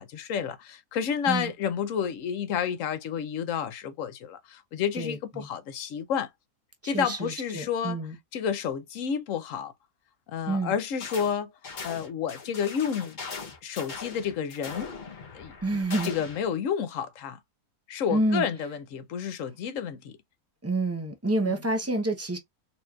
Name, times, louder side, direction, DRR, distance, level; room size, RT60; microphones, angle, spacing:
voice 1, 0.0-6.3 6.8-8.0 8.3-9.7 10.3-11.5 11.8-13.2 13.6-14.9 15.3-15.5 16.0-17.4 17.9-20.2 21.4-21.5, left 8 dB, 65° left, 1.0 m, -30 dB
voice 2, 5.0-5.5 6.8-8.2 10.5-10.7 15.6-16.1 18.1-18.5 20.6-22.4, right 2 dB, 20° right, 0.3 m, -28 dB
sound 1, 11.0-11.3 11.6-16.5, left 5 dB, 40° left, 0.8 m, -40 dB
4.3 x 2.9 x 2.3 m
omnidirectional pair, 1.5 m